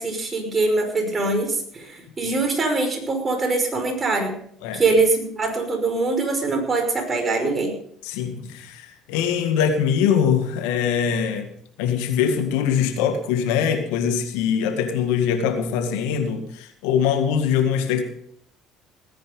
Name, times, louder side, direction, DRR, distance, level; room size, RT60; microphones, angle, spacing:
voice 1, 0.0-4.3 4.7-7.8, right 3 dB, 30° right, 5 dB, 5.4 m, -23 dB
voice 2, 8.0-11.5 11.8-18.0, left 7 dB, 75° left, 7 dB, 1.9 m, -22 dB
18.5 x 10.0 x 5.3 m, 0.64 s
hypercardioid pair, 60°, 0 cm